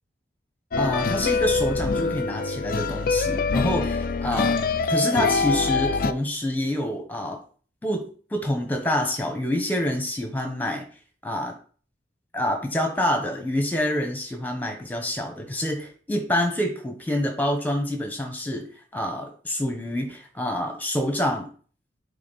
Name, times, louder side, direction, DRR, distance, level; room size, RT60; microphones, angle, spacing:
sound 1, 0.7-6.1, left 4 dB, 50° left, 0.4 m, -24 dB
voice 1, 0.8-4.6 4.9-7.4 7.8-10.9 11.2-11.5 12.3-18.7 18.9-21.5, left 1 dB, 10° left, 4 dB, 1.3 m, -27 dB
8.5 x 3.6 x 4.2 m, 0.42 s
head